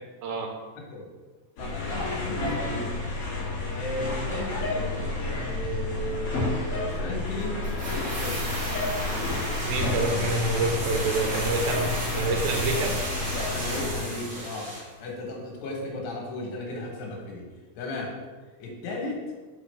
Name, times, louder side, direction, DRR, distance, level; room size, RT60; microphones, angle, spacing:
voice 1, 0.8-1.1 1.6-3.1 3.7-4.9 5.4-8.4 13.5-14.7 15.0-17.5 17.8-18.2 18.6-19.2, left 1 dB, 80° left, -1 dB, 3.3 m, -35 dB
sound 1, 1.6-14.0, left 2 dB, 45° left, 2.1 m, -30 dB
sound 2, 7.6-14.9 15.2-15.3, right 1 dB, 45° right, 2.3 m, -34 dB
voice 2, 9.6-13.0, right 3 dB, 85° right, 2 dB, 2.9 m, -27 dB
5.9 x 5.7 x 3.3 m, 1.3 s
omnidirectional pair, 4.8 m